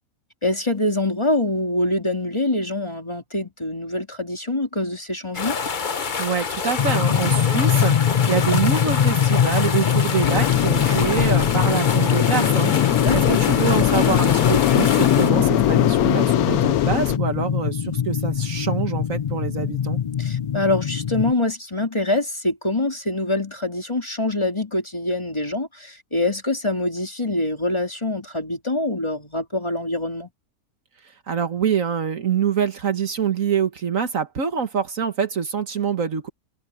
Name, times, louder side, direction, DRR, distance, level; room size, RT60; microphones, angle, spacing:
voice 1, 0.4-5.6 12.9-13.4 20.2-30.3, left 2 dB, 20° left, 3.1 m, -25 dB
sound 1, 5.3-15.3, left 5 dB, 40° left, 1.0 m, -27 dB
voice 2, 6.2-20.0 31.3-36.3, right 7 dB, 65° right, 1.8 m, -25 dB
sound 2, 6.8-21.3, left 8 dB, 55° left, 0.4 m, -22 dB
sound 3, 10.2-17.2, left 13 dB, 85° left, 1.1 m, -22 dB
omnidirectional pair, 1.5 m